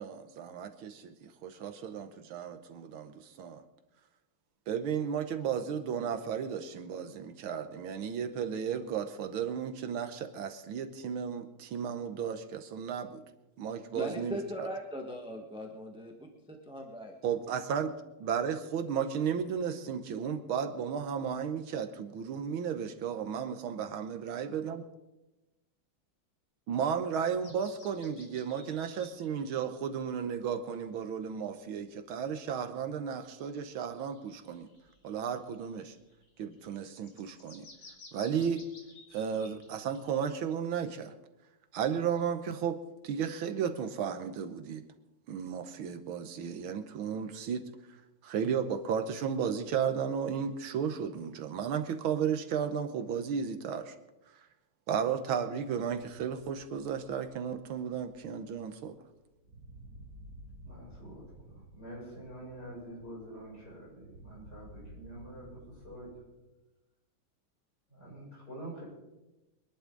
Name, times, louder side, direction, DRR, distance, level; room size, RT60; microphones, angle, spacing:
voice 1, 0.0-3.6 4.7-13.2 13.6-14.7 17.2-17.9 18.2-24.8 26.7-34.7 35.0-36.0 36.4-37.6 38.1-38.6 39.1-41.1 41.7-42.8 43.0-44.8 45.3-47.7 48.2-53.9 54.9-59.0, right 7 dB, 75° right, 8 dB, 1.7 m, -34 dB
voice 2, 13.9-17.1, equal, 5° right, 1 dB, 1.2 m, -40 dB
sound 1, 27.4-29.6 30.2-30.3 31.2-31.3 33.2-40.2, left 2 dB, 85° left, 3.6 m, -56 dB
sound 2, 58.2-66.2, right 1 dB, 40° right, 2.3 m, -54 dB
voice 3, 60.6-66.1 67.9-68.8, right 1 dB, 45° left, -5 dB, 7.6 m, -46 dB
24.5 x 11.0 x 3.9 m, 1.0 s
omnidirectional pair, 2.4 m